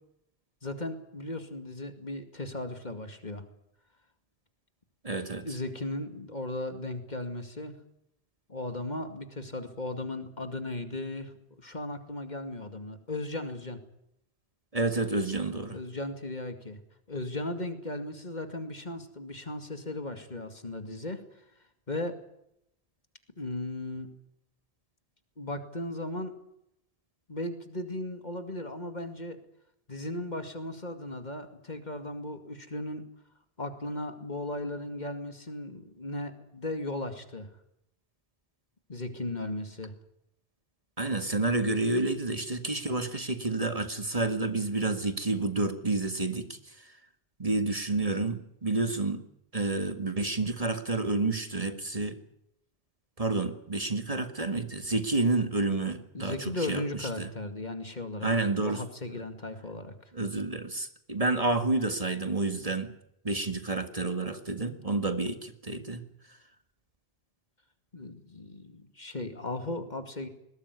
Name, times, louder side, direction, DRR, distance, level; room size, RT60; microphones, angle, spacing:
voice 1, 0.6-3.4 5.4-7.7 8.5-13.8 15.7-16.8 17.1-21.2 21.9-22.1 23.4-24.1 25.4-26.3 27.3-29.4 29.9-33.0 33.6-37.5 38.9-39.9 56.1-58.3 58.6-59.9 67.9-70.3, left 2 dB, 45° left, 7 dB, 2.5 m, -36 dB
voice 2, 5.0-5.4 14.7-15.8 41.0-46.9 47.4-49.2 49.5-52.2 53.2-57.3 58.2-58.8 60.1-62.9 63.2-66.0, right 3 dB, 35° right, 7 dB, 2.0 m, -29 dB
21.0 x 18.0 x 9.7 m, 0.78 s
omnidirectional pair, 1.1 m